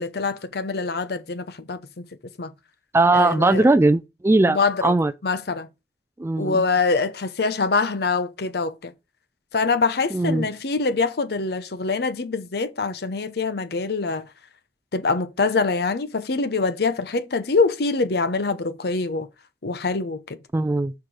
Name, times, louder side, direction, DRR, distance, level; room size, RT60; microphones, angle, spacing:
voice 1, 0.0-1.8 2.4-2.5 3.1-3.7 4.5-5.0 5.2-5.7 6.4-8.9 9.5-14.3 14.9-19.3 19.6-20.4, left 4 dB, 65° left, 0.7 m, -24 dB
voice 2, 2.9-5.1 6.2-6.6 10.1-10.5 20.5-20.9, right 2 dB, 15° right, 0.3 m, -19 dB
5.8 x 4.7 x 5.0 m
head